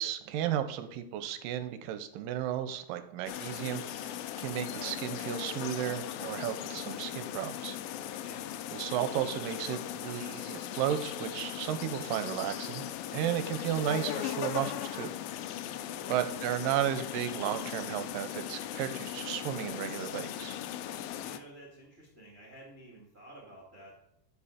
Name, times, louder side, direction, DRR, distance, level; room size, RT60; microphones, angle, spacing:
voice 1, 0.0-7.8 8.7-12.9 13.1-15.1 16.1-20.6, right 11 dB, 80° right, 10 dB, 2.3 m, -34 dB
sound 1, 3.3-21.4, left 11 dB, 90° left, 2.4 m, -38 dB
voice 2, 8.2-8.5 15.8-16.4 21.2-24.0, right 1 dB, 35° right, -4 dB, 1.0 m, -52 dB
11.0 x 5.1 x 5.0 m, 0.79 s
omnidirectional pair, 4.1 m